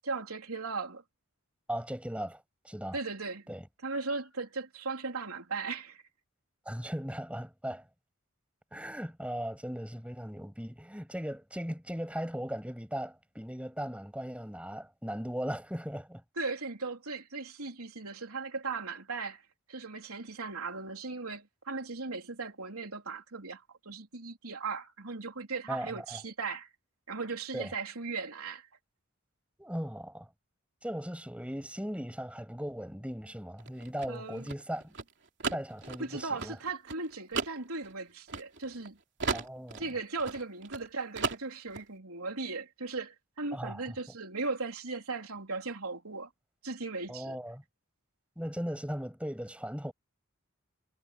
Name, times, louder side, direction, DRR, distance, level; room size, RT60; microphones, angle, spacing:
voice 1, 0.0-1.0 2.9-3.5 3.8-6.0 16.4-19.4 19.7-26.7 27.1-28.7 34.1-34.5 36.0-39.0 39.8-46.3 46.6-47.4, right 4 dB, 90° right, 3.8 m, -37 dB
voice 2, 1.7-3.0 3.5-3.6 6.7-7.9 8.7-16.2 25.7-26.2 27.5-27.7 29.6-30.3 30.8-34.9 35.5-36.6 39.3-39.8 43.5-43.8 47.1-47.6 48.4-49.9, equal, 5° right, 7.3 m, -38 dB
sound 1, 33.6-38.9 39.2-40.9 41.1-41.8, right 4 dB, 55° right, 3.2 m, -36 dB
head